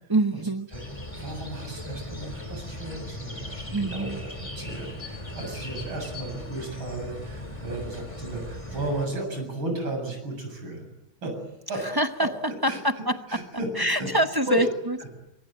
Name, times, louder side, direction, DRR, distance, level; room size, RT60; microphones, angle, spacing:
voice 1, 0.1-0.7 3.7-4.2 11.8-13.4 13.8-15.1, right 1 dB, 30° right, 8 dB, 0.4 m, -26 dB
sound 1, 0.7-9.1, left 1 dB, 15° left, 3.2 m, -38 dB
voice 2, 1.2-10.9 11.2-11.3 11.7-11.8 12.7-12.8 13.3-14.1 14.5-14.7, right 2 dB, 85° right, 3 dB, 8.4 m, -34 dB
24.5 x 24.5 x 9.0 m, 0.95 s
omnidirectional pair, 2.2 m